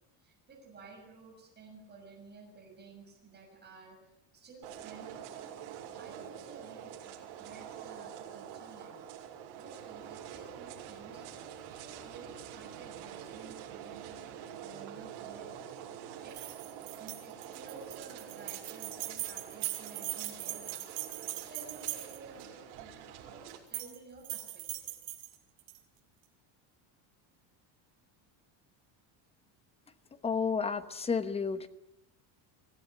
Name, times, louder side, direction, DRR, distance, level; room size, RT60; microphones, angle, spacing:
voice 1, 0.2-5.3 6.0-9.0 9.6-15.5 16.2-16.4 17.0-20.9 21.1-24.9, right 4 dB, 20° right, 0 dB, 6.8 m, -53 dB
sound 1, 4.6-23.6, right 9 dB, 65° right, 7.0 m, -46 dB
sound 2, 16.3-22.4 23.5-24.0 24.2-25.8, right 16 dB, 50° right, 5.7 m, -40 dB
voice 2, 30.2-31.7, left 5 dB, 10° left, 12 dB, 1.0 m, -31 dB
25.0 x 17.0 x 9.9 m, 0.85 s
cardioid pair, 175°, 47 cm